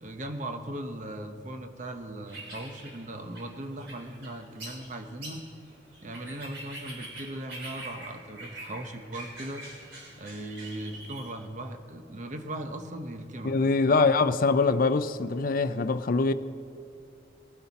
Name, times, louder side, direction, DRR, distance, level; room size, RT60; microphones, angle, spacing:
voice 1, 0.0-5.4 6.0-9.7 10.2-13.5 13.9-14.1, right 1 dB, 40° right, 0.9 m, -38 dB
sound 1, 2.3-11.3, right 1 dB, 65° right, 3.8 m, -45 dB
voice 2, 13.4-16.3, left 4 dB, 50° left, 0.5 m, -23 dB
20.5 x 11.5 x 4.1 m
head